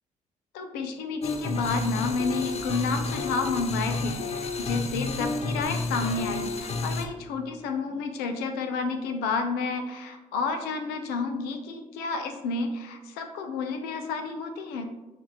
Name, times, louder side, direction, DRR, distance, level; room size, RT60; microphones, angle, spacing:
voice 1, 0.5-14.9, left 4 dB, 85° left, 7 dB, 0.5 m, -30 dB
sound 1, 1.2-7.1, left 3 dB, 45° left, 0.6 m, -30 dB
7.0 x 2.4 x 2.9 m, 1.1 s
supercardioid pair, 65°, 16 cm